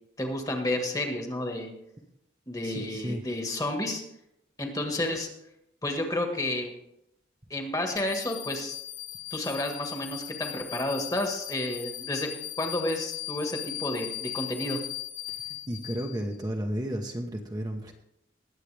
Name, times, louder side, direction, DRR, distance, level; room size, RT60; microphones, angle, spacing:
voice 1, 0.2-1.7 2.5-4.0 4.6-5.3 5.8-6.7 7.5-8.7 9.3-12.3 12.6-14.8, left 1 dB, 20° left, 3 dB, 1.6 m, -31 dB
voice 2, 2.6-3.3 15.3-17.9, equal, 20° right, 2 dB, 1.0 m, -33 dB
sound 1, 7.9-16.4, left 14 dB, 40° left, 0.9 m, -38 dB
20.5 x 8.3 x 3.4 m, 0.80 s
head